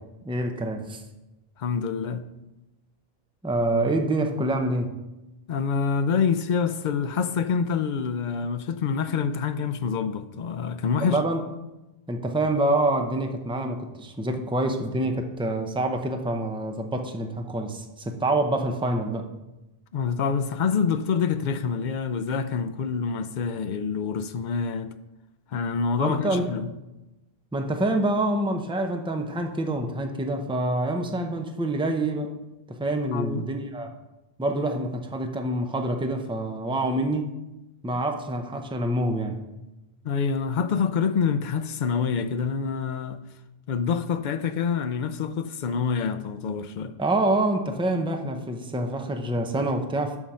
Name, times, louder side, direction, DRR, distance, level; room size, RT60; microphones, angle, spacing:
voice 1, 0.3-1.0 3.4-4.9 11.0-11.4 12.1-19.3 26.0-26.5 27.5-32.3 32.7-33.9 34.4-37.3 37.8-39.4 47.0-50.2, right 1 dB, 5° right, 0.6 m, -26 dB
voice 2, 1.6-2.2 5.5-11.2 19.9-24.9 25.5-26.7 33.1-33.5 40.0-43.2 43.7-46.9, left 6 dB, 55° left, 0.6 m, -26 dB
7.2 x 6.2 x 5.5 m
omnidirectional pair, 1.0 m